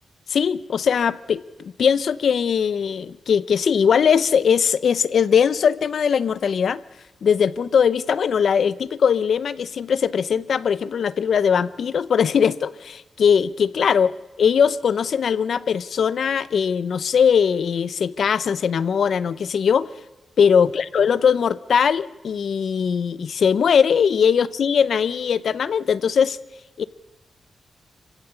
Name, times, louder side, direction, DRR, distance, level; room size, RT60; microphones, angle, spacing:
voice 1, 0.3-6.8 7.2-14.1 14.4-19.9 20.4-26.4 26.8-26.9, left 7 dB, 65° left, 18 dB, 0.7 m, -20 dB
26.0 x 16.0 x 8.2 m, 1.1 s
wide cardioid pair, 145°, 0 cm